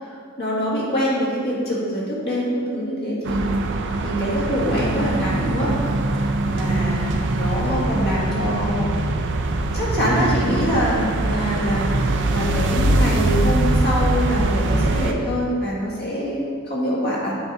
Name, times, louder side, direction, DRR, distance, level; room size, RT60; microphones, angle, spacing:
voice 1, 0.0-3.4 4.0-5.8 6.4-7.0 7.4-8.9 9.7-17.4, equal, 50° left, -5 dB, 1.8 m, -24 dB
sound 1, 3.2-15.1, right 2 dB, 60° right, 0.5 m, -22 dB
8.4 x 3.9 x 4.7 m, 2.1 s
head